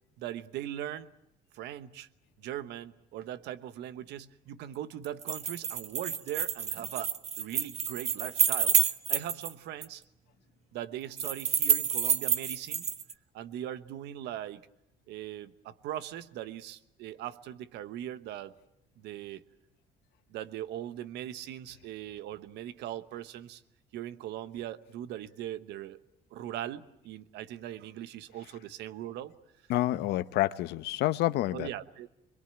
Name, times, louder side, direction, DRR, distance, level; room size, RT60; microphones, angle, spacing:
voice 1, 0.2-1.1 1.5-2.1 2.4-10.0 10.7-12.9 13.3-14.7 15.1-18.5 19.0-19.4 20.3-23.6 23.9-26.0 26.3-29.3 31.5-32.2, right 12 dB, 85° right, 13 dB, 1.2 m, -40 dB
sound 1, 5.0-9.5 9.8-9.9 11.2-13.1, right 7 dB, 40° right, 1.1 m, -28 dB
voice 2, 29.7-31.7, left 15 dB, 80° left, 13 dB, 0.9 m, -28 dB
24.0 x 22.0 x 8.9 m, 0.86 s
cardioid pair, 110°, 17 cm